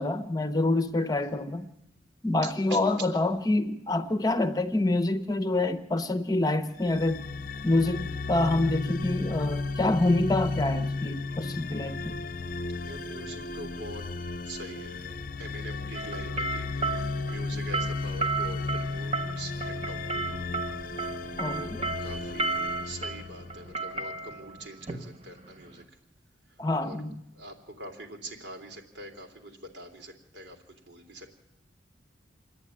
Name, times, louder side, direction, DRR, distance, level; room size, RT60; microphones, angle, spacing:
voice 1, 0.0-1.7 2.2-7.2 7.6-12.2 21.4-21.9 26.6-27.2, left 2 dB, 20° left, 0.9 m, -27 dB
voice 2, 1.2-1.5 2.4-3.1 12.8-14.1 14.4-20.4 21.4-21.7 22.0-26.0 26.5-27.0 27.3-31.4, right 1 dB, 85° right, 3.2 m, -44 dB
sound 1, 6.8-23.9, left 3 dB, 50° left, 0.7 m, -34 dB
sound 2, 15.9-25.8, right 3 dB, 35° right, 1.5 m, -34 dB
27.0 x 10.5 x 9.9 m
head